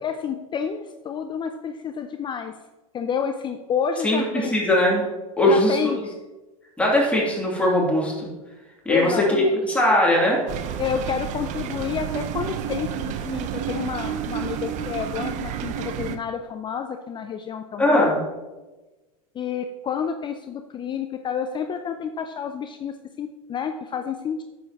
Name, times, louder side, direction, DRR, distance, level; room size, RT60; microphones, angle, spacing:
voice 1, 0.0-2.5 2.9-4.5 5.4-6.1 8.9-9.6 10.8-18.1 19.3-24.4, left 7 dB, 25° left, 7 dB, 0.5 m, -29 dB
voice 2, 4.0-5.1 5.4-5.8 6.8-8.3 8.8-10.5 17.8-18.2, left 1 dB, 5° left, -4 dB, 2.7 m, -20 dB
sound 1, 10.5-16.2, right 9 dB, 40° right, 0.7 m, -30 dB
9.2 x 7.2 x 2.9 m, 1.1 s
hypercardioid pair, 95°, 19 cm